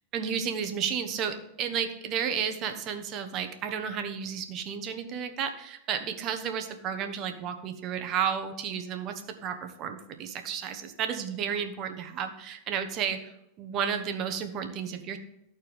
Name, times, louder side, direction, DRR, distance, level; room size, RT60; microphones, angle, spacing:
voice 1, 0.1-13.2 13.6-15.2, right 7 dB, 45° right, 7 dB, 1.1 m, -32 dB
13.0 x 4.4 x 3.5 m, 0.82 s
hypercardioid pair, 115°, 0 cm